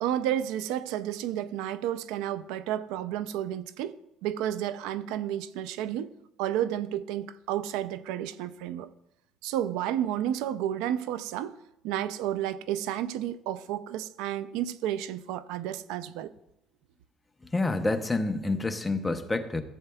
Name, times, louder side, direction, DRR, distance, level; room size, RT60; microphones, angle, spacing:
voice 1, 0.0-6.1 6.4-8.9 9.4-11.6 11.8-16.3, right 11 dB, 85° right, 0.4 m, -31 dB
voice 2, 17.4-19.6, left 2 dB, 10° left, 0.6 m, -28 dB
14.5 x 8.0 x 2.3 m
cardioid pair, 140°, 0 cm